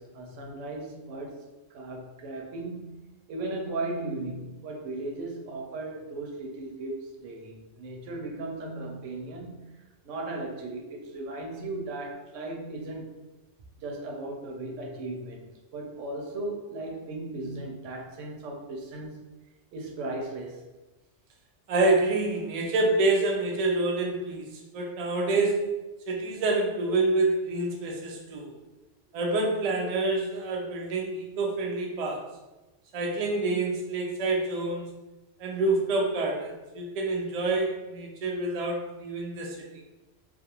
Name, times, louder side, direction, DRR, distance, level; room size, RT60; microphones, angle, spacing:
voice 1, 0.0-1.4 1.7-3.0 3.3-13.2 13.8-19.2 19.7-20.6, right 2 dB, 85° right, 1 dB, 0.9 m, -37 dB
voice 2, 21.7-25.7 26.1-28.5 29.1-32.3 32.9-34.9 35.4-39.7, right 2 dB, 65° right, 0 dB, 0.3 m, -27 dB
2.4 x 2.2 x 2.8 m, 1.1 s
omnidirectional pair, 1.2 m